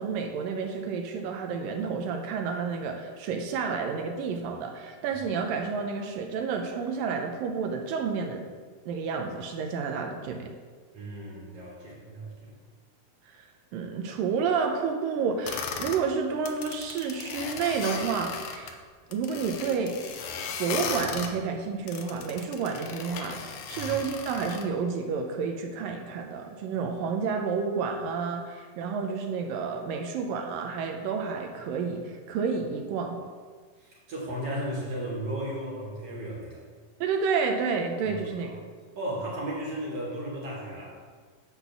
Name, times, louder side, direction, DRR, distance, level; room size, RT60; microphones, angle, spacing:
voice 1, 0.0-8.5 8.9-10.5 13.3-18.8 19.1-20.3 20.6-33.2 37.0-38.6, right 5 dB, 80° right, 4 dB, 2.4 m, -30 dB
voice 2, 10.9-12.5 23.7-23.9 33.8-36.6 38.1-38.5 38.9-41.0, right 1 dB, 50° right, -4 dB, 2.5 m, -35 dB
sound 1, 15.5-16.0 16.4-18.7 19.1-21.3 21.9-24.7, left 6 dB, 90° left, 1.4 m, -36 dB
10.0 x 4.3 x 7.0 m, 1.5 s
omnidirectional pair, 4.1 m